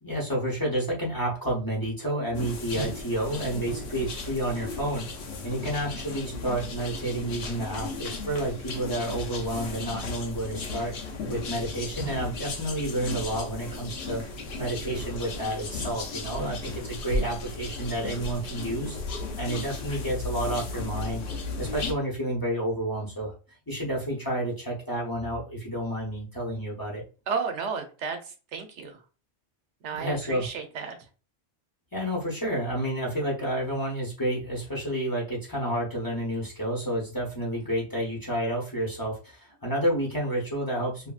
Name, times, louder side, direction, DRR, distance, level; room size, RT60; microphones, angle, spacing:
voice 1, 0.0-5.1 5.4-10.9 11.3-14.2 14.6-19.0 19.4-21.2 21.6-23.3 23.7-27.0 29.9-30.5 31.9-41.1, right 1 dB, 20° left, -3 dB, 0.7 m, -30 dB
sound 1, 2.3-21.9, left 3 dB, 70° left, 0.8 m, -35 dB
voice 2, 27.3-28.2 28.5-29.0 29.8-30.9, right 5 dB, 85° right, 5 dB, 1.0 m, -32 dB
2.7 x 2.6 x 2.3 m, 0.34 s
omnidirectional pair, 1.1 m